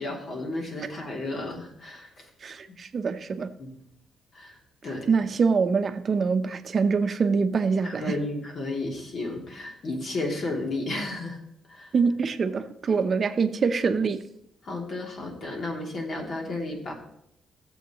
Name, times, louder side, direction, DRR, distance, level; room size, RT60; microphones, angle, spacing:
voice 1, 0.0-2.3 3.6-3.8 4.3-4.6 4.8-5.1 7.8-11.4 11.7-11.9 14.6-16.9, left 2 dB, 55° left, 0 dB, 2.9 m, -33 dB
voice 2, 2.4-3.5 5.1-8.1 11.9-14.2, right 5 dB, 45° right, 8 dB, 0.8 m, -24 dB
16.5 x 7.4 x 3.1 m, 0.74 s
cardioid pair, 95°, 0 cm